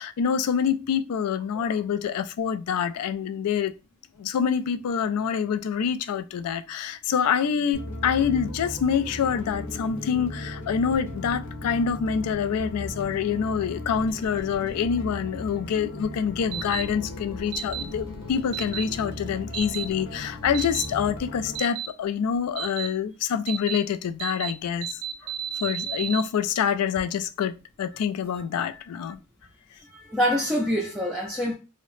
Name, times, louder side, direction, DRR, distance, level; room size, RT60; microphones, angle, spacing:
voice 1, 0.0-3.7 4.2-25.0 25.6-29.2, left 7 dB, 85° left, 0.3 m, -26 dB
sound 1, 7.7-21.6, left 1 dB, 60° left, 0.7 m, -37 dB
sound 2, 16.5-16.8 17.5-17.8 18.5-18.8 19.5-19.8 20.5-20.9 21.6-21.9 22.6-22.9 23.5-23.8 24.2-24.5 24.8-26.2, right 10 dB, 80° right, 0.4 m, -32 dB
voice 2, 29.9-31.5, equal, ahead, 0.4 m, -26 dB
2.8 x 2.0 x 3.0 m
head